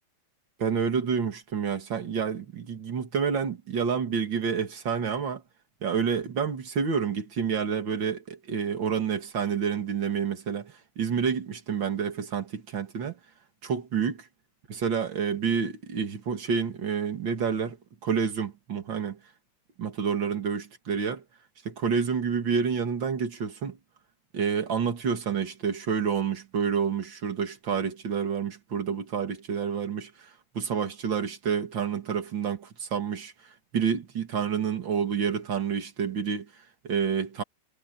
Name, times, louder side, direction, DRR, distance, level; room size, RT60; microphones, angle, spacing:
voice 1, 0.6-5.4 5.8-13.2 13.6-14.3 14.7-17.8 18.0-19.2 19.8-21.2 21.6-23.8 24.3-33.3 33.7-37.4, right 6 dB, 65° right, 1.1 m, -29 dB
omnidirectional pair, 5.5 m